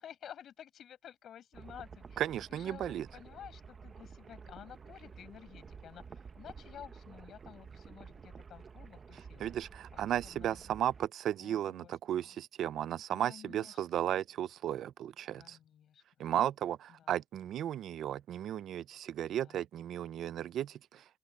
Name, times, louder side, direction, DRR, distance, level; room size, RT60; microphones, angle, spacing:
voice 1, 0.0-2.2 2.5-9.5 9.9-10.7 11.4-12.4 13.1-14.0 15.3-16.0 17.0-17.1 19.3-19.6, left 9 dB, 70° left, 5.6 m, -52 dB
sound 1, 1.5-11.1, right 5 dB, 40° right, 0.9 m, -51 dB
voice 2, 2.2-3.1 9.4-15.6 16.2-21.0, right 11 dB, 85° right, 0.5 m, -35 dB
open air
cardioid pair, 125°, 0 cm